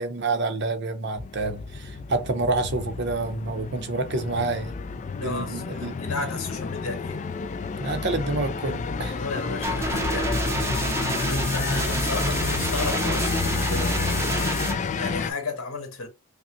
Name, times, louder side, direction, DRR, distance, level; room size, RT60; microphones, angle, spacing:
voice 1, 0.0-4.7 5.2-6.0 7.8-9.2 10.5-10.8, right 3 dB, 55° right, 0.7 m, -28 dB
sound 1, 1.2-15.3, left 4 dB, 35° left, 0.3 m, -30 dB
voice 2, 5.1-7.2 9.1-10.4 11.2-16.1, left 3 dB, 80° left, 1.5 m, -34 dB
sound 2, 9.6-14.7, right 2 dB, 10° right, 0.6 m, -28 dB
5.3 x 2.1 x 2.6 m
head